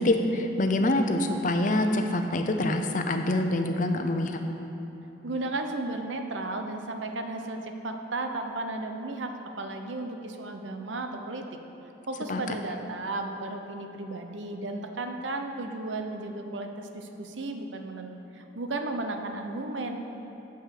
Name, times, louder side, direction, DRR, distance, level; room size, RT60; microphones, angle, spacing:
voice 1, 0.0-4.4 12.3-12.6, left 1 dB, 45° left, 5 dB, 0.7 m, -25 dB
voice 2, 5.2-11.5 12.1-20.0, right 2 dB, 90° right, 5 dB, 0.8 m, -34 dB
9.0 x 7.2 x 6.7 m, 3.0 s
head